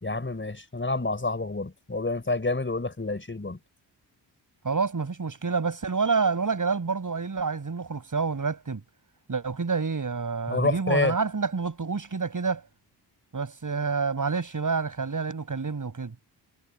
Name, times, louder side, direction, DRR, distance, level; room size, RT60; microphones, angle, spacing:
voice 1, 0.0-3.6 10.5-11.1, left 2 dB, 25° left, 5.6 m, -28 dB
voice 2, 4.6-8.8 9.3-12.6 13.3-16.1, right 4 dB, 45° right, 7.9 m, -28 dB
cardioid pair, 55°, 44 cm